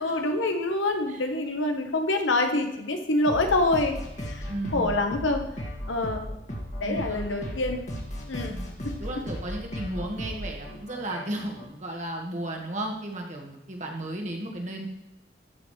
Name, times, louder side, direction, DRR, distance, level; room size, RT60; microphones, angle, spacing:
voice 1, 0.0-4.0 4.7-5.4 5.9-6.3 6.8-7.8 8.3-8.6, left 2 dB, 85° left, 5 dB, 1.2 m, -26 dB
sound 1, 3.3-11.7, equal, 40° left, 2.0 m, -36 dB
voice 2, 4.5-5.0 6.8-7.4 8.5-14.9, right 1 dB, 40° right, 0 dB, 1.7 m, -34 dB
13.5 x 6.4 x 3.3 m, 0.89 s
head